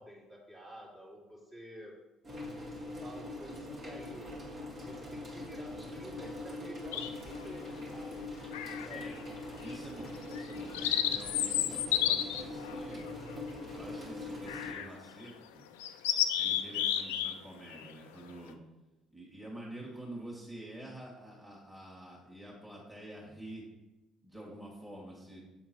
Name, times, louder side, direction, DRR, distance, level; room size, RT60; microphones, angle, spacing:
voice 1, 0.0-2.0 3.0-4.3 4.8-8.3 8.8-9.2, equal, 25° right, -4 dB, 2.4 m, -50 dB
sound 1, 2.2-14.7, left 2 dB, 40° right, 2.0 m, -42 dB
sound 2, 6.9-7.4 8.5-9.2 9.6-9.8 10.3-13.8 14.5-14.9 15.3-15.4 15.8-17.3 17.6-17.9, left 10 dB, 80° left, 0.3 m, -32 dB
voice 2, 9.6-13.1 13.7-15.7 16.4-18.6 19.1-23.7 24.2-25.4, right 1 dB, 5° right, -4 dB, 2.1 m, -48 dB
7.6 x 3.8 x 4.5 m, 1.1 s
hypercardioid pair, 55°, 0 cm